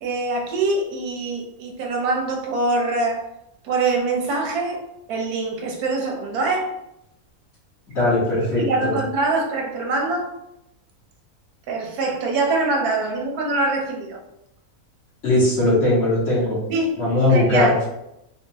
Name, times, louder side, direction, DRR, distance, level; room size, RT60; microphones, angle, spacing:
voice 1, 0.0-3.2 3.6-4.8 5.1-6.7 8.5-10.4 11.7-14.2 16.7-17.0 17.3-17.7, right 3 dB, 85° right, 1 dB, 1.2 m, -24 dB
voice 2, 7.9-8.9 15.2-16.6 17.0-17.7, left 2 dB, 50° left, -7 dB, 1.4 m, -19 dB
3.7 x 2.1 x 2.7 m, 0.83 s
omnidirectional pair, 1.6 m